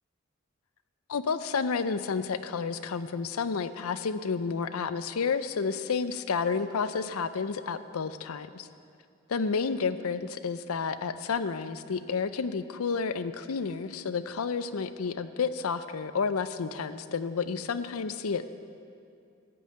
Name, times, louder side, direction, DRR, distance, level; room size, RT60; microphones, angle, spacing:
voice 1, 1.1-8.7 9.3-18.4, left 5 dB, 85° left, 12 dB, 0.5 m, -30 dB
15.0 x 5.5 x 8.7 m, 2.5 s
head